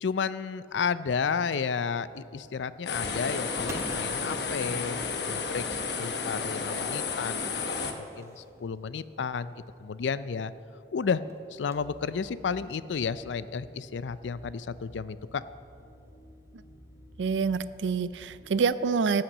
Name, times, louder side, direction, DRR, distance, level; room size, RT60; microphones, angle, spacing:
voice 1, 0.0-10.5 10.9-11.2 11.5-15.4, left 6 dB, 85° left, 16 dB, 0.4 m, -32 dB
sound 1, 2.9-7.9, left 4 dB, 65° left, 1.0 m, -32 dB
sound 2, 2.9-9.9 10.5-10.6 10.8-10.9 11.3-12.0 12.5-12.6 13.5-13.6 13.9-14.1 15.4-15.7 16.1-16.2 16.8-17.0, right 1 dB, 15° right, 0.9 m, -47 dB
sound 3, 11.7-18.6, equal, 15° left, 1.7 m, -53 dB
voice 2, 17.2-19.2, right 5 dB, 85° right, 15 dB, 0.4 m, -27 dB
14.5 x 5.8 x 8.5 m, 2.5 s
head